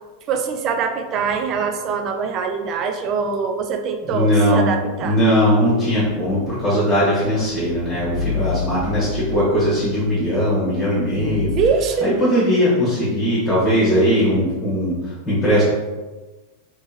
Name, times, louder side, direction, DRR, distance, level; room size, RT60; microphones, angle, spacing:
voice 1, 0.3-5.2 11.6-12.1, right 6 dB, 35° right, 5 dB, 0.4 m, -23 dB
voice 2, 4.1-4.7 5.0-11.5 12.0-15.6, equal, 10° left, -9 dB, 1.5 m, -19 dB
sound 1, 7.3-10.3 10.8-11.7, left 5 dB, 55° left, 0.8 m, -30 dB
3.5 x 3.0 x 2.9 m, 1.2 s
figure-of-eight pair, 90°, 0 cm